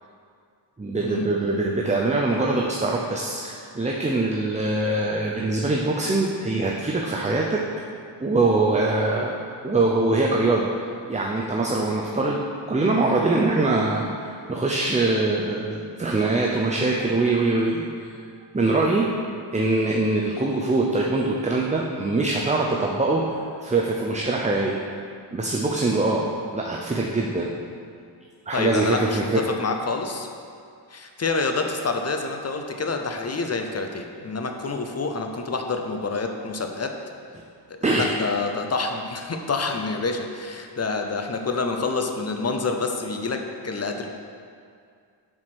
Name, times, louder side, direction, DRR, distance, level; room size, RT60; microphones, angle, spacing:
voice 1, 0.8-7.6 8.2-9.4 9.6-10.7 11.1-18.1 18.5-19.1 19.5-23.2 23.6-24.8 25.3-26.3 26.5-27.5 28.5-29.4 37.8-38.1, right 2 dB, 15° right, -1 dB, 0.5 m, -23 dB
voice 2, 28.5-30.3 30.9-37.0 37.7-44.1, left 3 dB, 35° left, 4 dB, 0.7 m, -27 dB
7.4 x 4.8 x 6.1 m, 2.3 s
wide cardioid pair, 110°, 44 cm